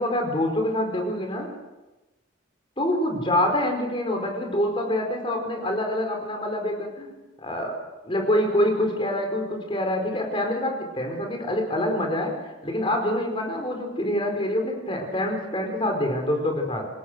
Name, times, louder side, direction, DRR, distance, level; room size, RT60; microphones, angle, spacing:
voice 1, 0.0-1.5 2.8-7.7 8.0-16.9, left 1 dB, 25° left, 3 dB, 4.8 m, -26 dB
28.0 x 19.5 x 6.5 m, 1.1 s
head